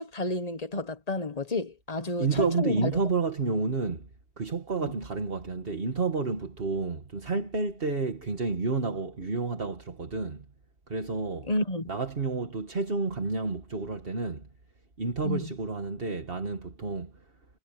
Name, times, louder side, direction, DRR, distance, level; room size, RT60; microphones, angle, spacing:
voice 1, 0.0-2.9 4.8-4.9 11.5-11.9 15.2-15.5, left 1 dB, 40° left, 1.3 m, -30 dB
voice 2, 2.2-4.1 4.4-10.4 10.9-11.5 11.9-14.5 15.0-17.2, right 4 dB, 65° right, 1.9 m, -30 dB
omnidirectional pair, 1.1 m